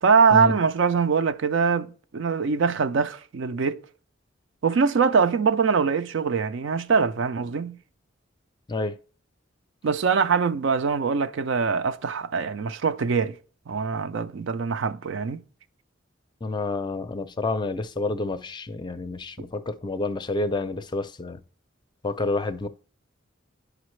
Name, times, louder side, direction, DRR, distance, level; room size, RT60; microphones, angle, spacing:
voice 1, 0.0-3.8 4.6-7.8 9.8-13.4 13.7-15.4, right 5 dB, 70° right, 0.4 m, -23 dB
voice 2, 16.4-21.4 22.0-22.7, left 2 dB, 25° left, 0.4 m, -29 dB
10.5 x 5.0 x 3.1 m
head